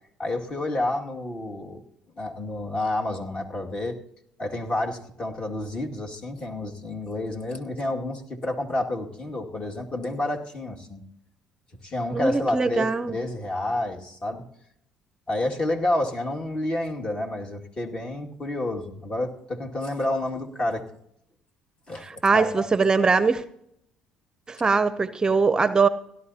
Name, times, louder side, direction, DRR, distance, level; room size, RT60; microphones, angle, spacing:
voice 1, 0.2-1.8 2.2-3.9 4.4-11.0 11.8-14.4 15.3-20.8 21.9-22.7, left 1 dB, 35° left, 2 dB, 2.1 m, -29 dB
voice 2, 12.1-13.1 22.0-23.4 24.5-25.9, right 4 dB, 25° right, 14 dB, 0.6 m, -22 dB
17.0 x 11.5 x 2.8 m, 0.74 s
supercardioid pair, 80°, 3 cm